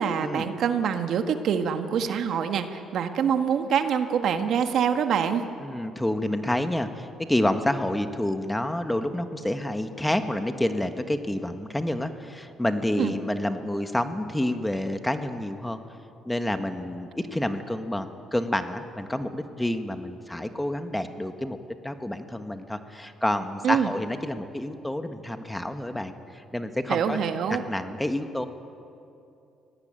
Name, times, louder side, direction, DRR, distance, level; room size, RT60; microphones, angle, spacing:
voice 1, 0.0-5.4 13.0-13.1 23.6-23.9 26.9-27.6, right 7 dB, 70° right, 7 dB, 1.6 m, -25 dB
voice 2, 5.6-15.8 16.2-21.6 21.8-27.2 27.5-28.5, left 1 dB, 10° left, 8 dB, 1.5 m, -28 dB
24.5 x 18.0 x 9.0 m, 2.7 s
cardioid pair, 90°, 0 cm